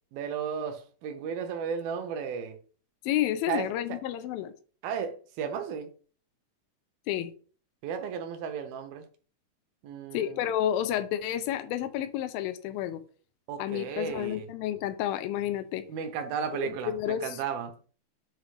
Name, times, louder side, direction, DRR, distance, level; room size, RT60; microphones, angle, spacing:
voice 1, 0.1-2.6 3.5-3.7 4.8-5.9 7.8-9.1 9.8-10.4 13.5-14.5 15.9-17.9, right 7 dB, 75° right, 2.6 m, -34 dB
voice 2, 3.1-4.5 7.1-7.3 10.1-13.0 13.6-15.8 16.6-17.4, left 11 dB, 80° left, 2.3 m, -30 dB
7.6 x 3.0 x 4.8 m
omnidirectional pair, 4.4 m